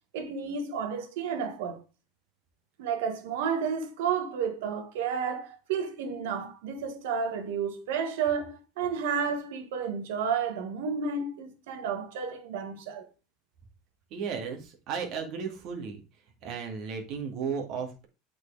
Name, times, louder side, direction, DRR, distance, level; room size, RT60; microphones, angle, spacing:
voice 1, 0.1-1.8 2.8-13.1, right 6 dB, 80° right, 1.5 m, -31 dB
voice 2, 14.1-16.0 16.4-18.1, right 6 dB, 55° right, 2.2 m, -34 dB
8.0 x 4.7 x 3.4 m
supercardioid pair, 120°, 0 cm